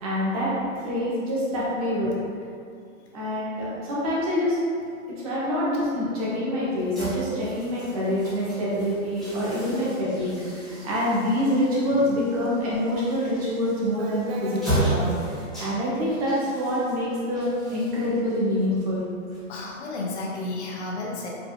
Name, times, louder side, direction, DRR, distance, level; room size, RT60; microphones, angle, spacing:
voice 1, 0.0-0.5 0.8-2.1 3.1-4.6 5.2-15.3 15.6-19.0, left 1 dB, 30° right, -8 dB, 0.9 m, -26 dB
sound 1, 6.8-19.8, right 1 dB, ahead, 1.0 m, -35 dB
sound 2, 10.7-10.8 11.5-11.6 11.8-12.5 13.0-13.3 13.7-15.2, right 3 dB, 55° right, 0.5 m, -36 dB
voice 2, 19.5-21.3, left 2 dB, 60° left, -2 dB, 0.8 m, -32 dB
4.7 x 3.3 x 2.6 m, 2.4 s
hypercardioid pair, 165°, 38 cm